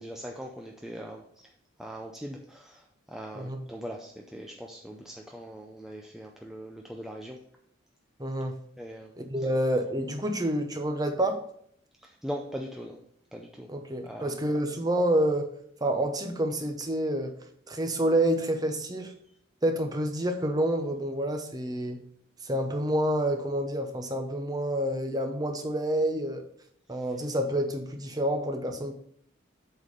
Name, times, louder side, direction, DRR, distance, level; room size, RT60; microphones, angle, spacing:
voice 1, 0.0-1.5 1.8-7.4 8.8-9.1 12.0-13.0 13.3-13.7 14.0-14.4, equal, ahead, 1 dB, 0.5 m, -40 dB
voice 2, 8.2-8.6 9.2-11.4 13.7-15.5 15.8-17.3 17.7-19.1 19.6-22.0 22.4-26.4 26.9-28.9, right 1 dB, 20° right, 5 dB, 0.8 m, -28 dB
7.8 x 4.2 x 5.2 m, 0.67 s
head